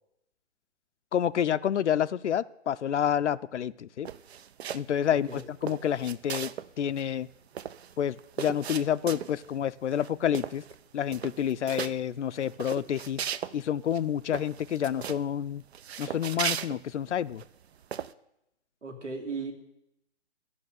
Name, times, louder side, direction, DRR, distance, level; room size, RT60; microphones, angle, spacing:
voice 1, 1.1-4.1 4.7-6.5 6.8-7.3 8.0-10.6 10.9-13.2 13.5-15.6 16.0-17.4, left 9 dB, 75° left, 14 dB, 0.5 m, -29 dB
sound 1, 4.0-5.0 5.3-6.7 7.0-7.1 7.3-9.5 9.9-10.1 10.3-10.8 11.1-11.9 12.4-13.6 13.9-14.0 14.3-15.2 15.7-17.4 17.9-18.1, right 8 dB, 65° right, 0.6 m, -36 dB
voice 2, 5.1-5.4 18.8-19.5, right 4 dB, 90° right, 4 dB, 2.5 m, -36 dB
12.5 x 5.8 x 9.0 m, 0.82 s
hypercardioid pair, 140°, 35 cm